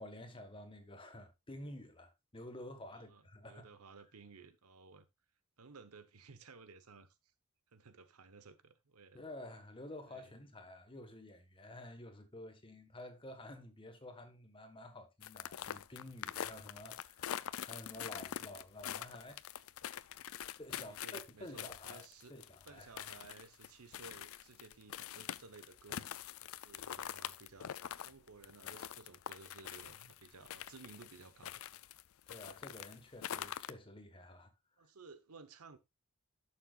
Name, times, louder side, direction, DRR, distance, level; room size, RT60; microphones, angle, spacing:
voice 1, 0.0-3.7 9.1-17.3 17.6-19.4 20.6-22.9 32.3-34.5, left 1 dB, 25° left, 1.4 m, -51 dB
voice 2, 2.9-5.1 5.6-7.1 7.7-9.2 10.1-10.3 20.7-22.4 22.7-26.1 26.4-27.8 28.0-31.8 34.8-35.8, right 4 dB, 90° right, 1.0 m, -56 dB
sound 1, 15.2-32.0 32.3-33.7, left 10 dB, 70° left, 0.4 m, -45 dB
11.5 x 6.7 x 2.4 m
head